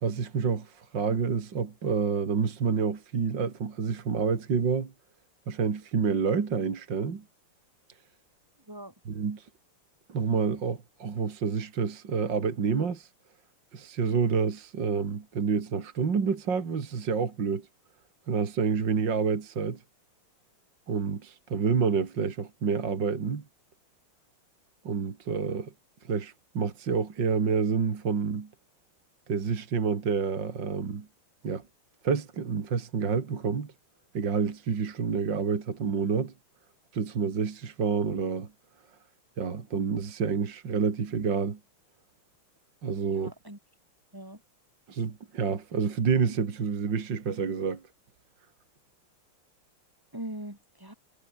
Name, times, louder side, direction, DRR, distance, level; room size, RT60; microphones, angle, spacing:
voice 1, 0.0-4.9 5.5-7.2 9.1-9.5 10.1-13.1 13.7-17.7 18.3-19.8 20.9-23.4 24.8-25.7 26.1-28.5 29.3-31.1 31.4-31.6 32.0-33.7 34.1-36.3 36.9-38.5 39.4-41.6 42.8-43.3 44.9-47.8, right 5 dB, 55° right, 3.0 m, -28 dB
voice 2, 8.6-8.9 43.1-43.6 44.1-44.4 50.1-50.9, right 1 dB, 10° right, 8.0 m, -41 dB
omnidirectional pair, 2.4 m